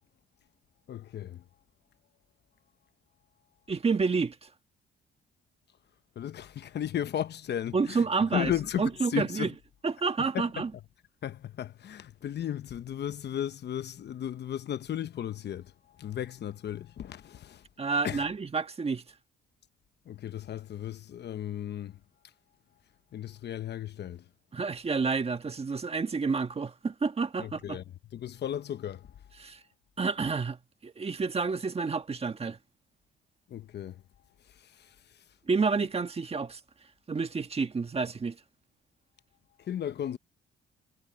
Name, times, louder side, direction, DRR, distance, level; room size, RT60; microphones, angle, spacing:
voice 1, 0.9-1.4 6.2-8.1 8.3-9.5 10.3-10.7 11.2-17.6 18.0-18.2 20.1-22.0 23.1-24.2 27.4-27.8 28.1-29.1 33.5-34.0 34.6-35.2 39.6-40.2, left 10 dB, 60° left, 1.0 m, -35 dB
voice 2, 3.7-4.5 7.7-8.5 8.8-9.5 9.8-10.7 17.8-19.0 24.5-27.8 29.4-29.6 30.0-32.6 35.5-36.6 37.1-38.4, right 4 dB, 30° right, 1.6 m, -29 dB
cardioid pair, 90°, 20 cm